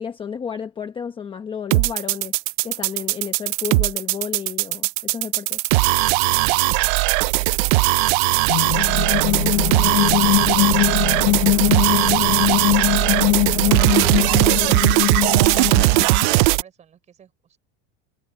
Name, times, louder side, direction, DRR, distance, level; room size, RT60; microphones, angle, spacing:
voice 1, 0.0-2.4 2.6-5.6, left 7 dB, 15° left, 1.1 m, -32 dB
sound 1, 1.7-16.6, right 23 dB, 50° right, 0.5 m, -19 dB
voice 2, 6.5-13.1 13.6-15.1 15.7-17.6, right 8 dB, 20° right, 4.1 m, -48 dB
sound 2, 8.5-16.3, left 24 dB, 65° left, 0.9 m, -21 dB
cardioid pair, 175°, 33 cm